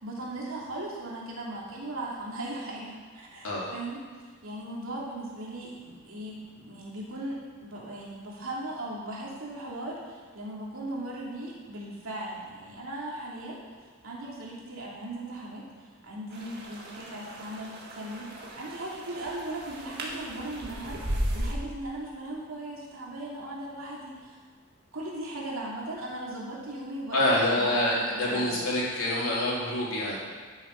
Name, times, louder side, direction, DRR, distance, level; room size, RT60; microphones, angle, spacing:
voice 1, 0.0-4.0 4.4-13.6 14.0-24.4 24.9-28.5, right 1 dB, 70° right, -4 dB, 2.7 m, -38 dB
sound 1, 16.3-21.5, equal, 50° right, 1.8 m, -36 dB
voice 2, 27.1-30.2, left 1 dB, 80° left, -6 dB, 3.4 m, -26 dB
12.0 x 6.8 x 5.2 m, 1.5 s
head